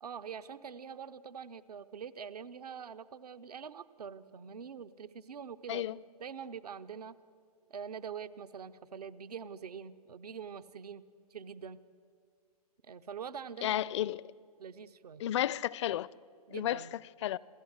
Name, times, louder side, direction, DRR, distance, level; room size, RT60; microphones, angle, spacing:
voice 1, 0.0-5.8 6.2-7.2 7.7-11.0 11.3-11.8 12.8-13.7 14.6-15.2 16.5-17.0, right 7 dB, 75° right, 0.9 m, -44 dB
voice 2, 13.6-14.2 15.2-16.1 16.5-16.8 17.2-17.4, left 12 dB, 45° left, 0.5 m, -32 dB
27.5 x 15.0 x 8.0 m
hypercardioid pair, 125°, 20 cm